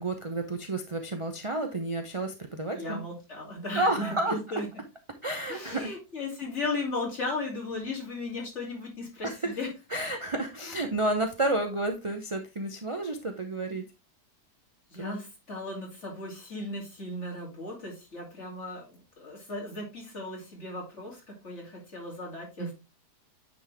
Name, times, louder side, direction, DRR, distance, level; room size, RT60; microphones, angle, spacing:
voice 1, 0.0-3.0 3.7-4.3 5.2-5.9 9.2-9.5 9.9-13.8 15.0-15.2 22.6-22.7, right 2 dB, 40° right, 5 dB, 0.4 m, -30 dB
voice 2, 2.7-4.7 5.5-9.7 10.7-10.8 14.9-22.7, left 2 dB, 45° left, -2 dB, 3.1 m, -36 dB
9.4 x 4.1 x 3.4 m, 0.27 s
omnidirectional pair, 1.8 m